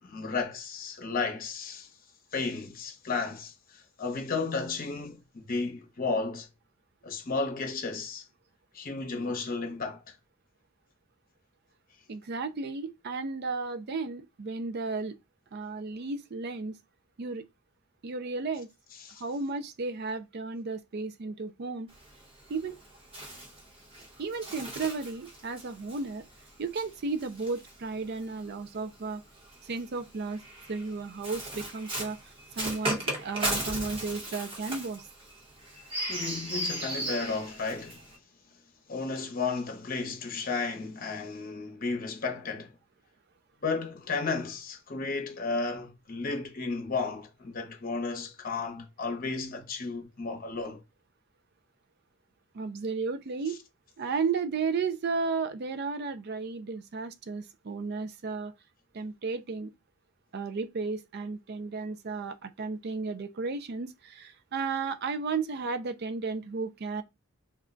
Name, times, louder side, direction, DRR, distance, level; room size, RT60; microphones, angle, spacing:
voice 1, 0.0-1.9 2.3-6.5 7.0-8.2 8.7-10.1 19.0-19.2 36.1-38.1 38.9-42.7 43.6-50.8, left 4 dB, 40° left, 0.8 m, -33 dB
voice 2, 12.1-15.2 15.5-16.8 17.2-17.5 18.0-18.7 19.2-21.9 22.5-22.8 24.2-26.3 26.6-29.2 29.6-30.4 30.7-32.2 32.6-35.1 52.5-53.6 54.0-58.5 58.9-59.7 60.3-67.0, right 4 dB, 50° right, 0.4 m, -33 dB
Bird, 21.9-28.4 29.4-38.2, right 1 dB, 25° right, 0.9 m, -37 dB
2.3 x 2.2 x 3.7 m
head